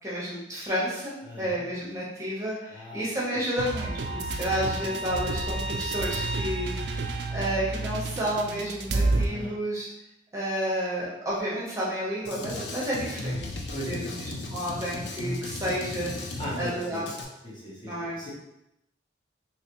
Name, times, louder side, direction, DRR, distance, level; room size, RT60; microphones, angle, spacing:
voice 1, 0.0-6.9 7.3-9.9 10.3-14.1 14.5-17.0 17.8-18.3, equal, 15° right, -7 dB, 0.9 m, -31 dB
voice 2, 1.2-1.6 2.7-3.4 4.8-5.0 9.0-9.5 13.7-14.2 16.4-17.1 17.4-18.3, left 1 dB, 25° left, -7 dB, 0.9 m, -38 dB
sound 1, 3.6-9.3, right 2 dB, 70° right, 0.3 m, -30 dB
Drum kit, 12.2-17.2, left 2 dB, 75° left, 0.5 m, -36 dB
3.2 x 3.0 x 2.9 m, 0.86 s
head